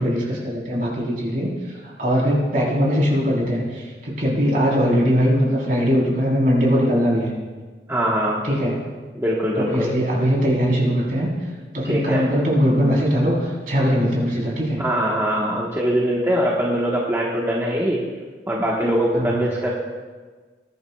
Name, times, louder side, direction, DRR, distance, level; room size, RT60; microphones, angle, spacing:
voice 1, 0.0-7.3 8.4-8.8 9.6-11.3 11.7-14.8 19.1-19.4, equal, 50° right, -3 dB, 3.8 m, -21 dB
voice 2, 7.9-8.4 9.1-9.9 11.9-12.3 14.8-18.0 18.5-19.7, equal, 15° right, -5 dB, 1.2 m, -22 dB
20.5 x 11.0 x 2.3 m, 1.4 s
head